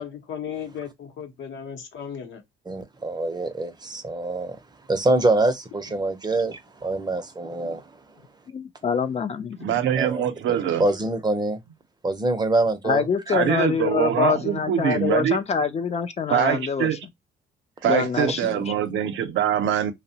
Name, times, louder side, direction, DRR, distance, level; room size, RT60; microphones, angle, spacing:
voice 1, 0.0-2.4, left 8 dB, 75° left, 0.7 m, -35 dB
voice 2, 2.7-4.6 4.9-7.8 10.0-11.6 12.0-13.0, right 2 dB, 20° right, 0.5 m, -25 dB
voice 3, 8.5-9.8 12.8-17.0 17.8-18.7, left 6 dB, 35° left, 0.4 m, -25 dB
voice 4, 9.6-10.8 13.3-15.4 16.3-17.0 17.8-19.9, right 9 dB, 75° right, 0.6 m, -23 dB
2.7 x 2.0 x 2.6 m
cardioid pair, 90°, 20 cm